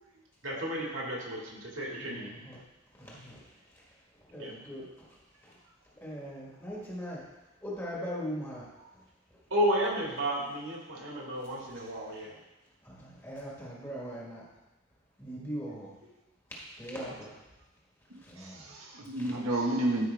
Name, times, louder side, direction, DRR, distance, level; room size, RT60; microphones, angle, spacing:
voice 1, 0.4-2.3 4.4-4.5 9.5-12.3, equal, 65° right, -3 dB, 2.4 m, -32 dB
voice 2, 2.0-2.6 3.0-5.6 6.0-7.3 7.6-9.0 9.3-9.4 11.4-11.5 11.7-12.4 12.8-14.5 15.2-15.9 16.5-17.4 18.1-18.7 19.1-19.3, equal, 10° left, -5 dB, 1.6 m, -41 dB
voice 3, 18.1-20.1, right 1 dB, 90° right, 0 dB, 1.6 m, -31 dB
13.0 x 5.3 x 3.5 m, 1.0 s
head